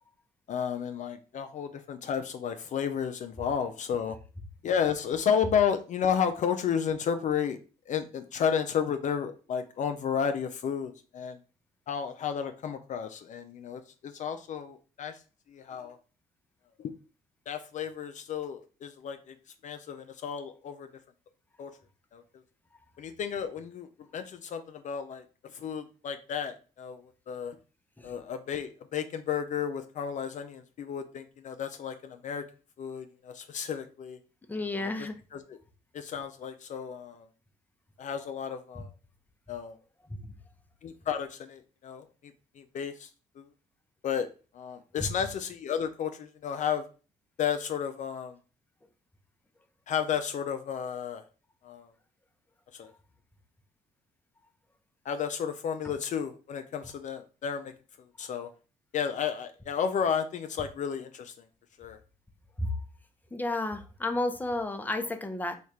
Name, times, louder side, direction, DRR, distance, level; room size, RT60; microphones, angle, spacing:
voice 1, 0.5-4.2 4.6-7.6 7.9-11.4 11.9-15.2 15.5-16.0 16.8-16.9 17.5-19.3 19.6-20.9 21.6-21.7 22.1-22.2 23.0-25.2 25.5-27.0 27.3-27.6 28.0-32.4 32.8-34.2 34.8-34.9 35.3-35.6 35.9-37.3 38.0-38.9 39.5-39.7 40.8-42.0 42.6-43.1 43.4-43.5 44.0-44.3 44.5-46.8 47.4-48.3 49.9-51.2 51.6-51.9 52.7-52.9 55.1-57.7 58.2-58.5 58.9-61.3 61.8-62.0, left 7 dB, 55° left, 7 dB, 0.4 m, -32 dB
voice 2, 34.5-35.2 40.1-40.3 45.0-45.1 62.6-62.8 63.3-65.5, left 2 dB, 10° left, 7 dB, 0.6 m, -32 dB
3.2 x 2.4 x 4.2 m, 0.36 s
supercardioid pair, 70°, 15 cm